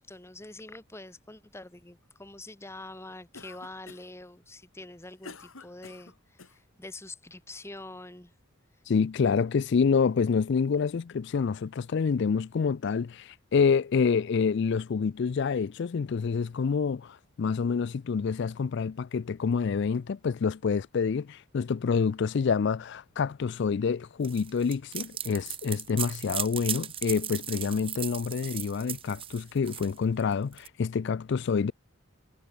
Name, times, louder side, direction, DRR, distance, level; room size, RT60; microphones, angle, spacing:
voice 1, 0.0-8.3, left 2 dB, 10° left, 1.2 m, -45 dB
Cough, 3.3-4.2 4.8-6.6, left 4 dB, 80° left, 2.7 m, -48 dB
voice 2, 8.9-31.7, left 5 dB, 55° left, 0.4 m, -27 dB
sound 1, 24.2-30.7, right 10 dB, 25° right, 0.9 m, -36 dB
head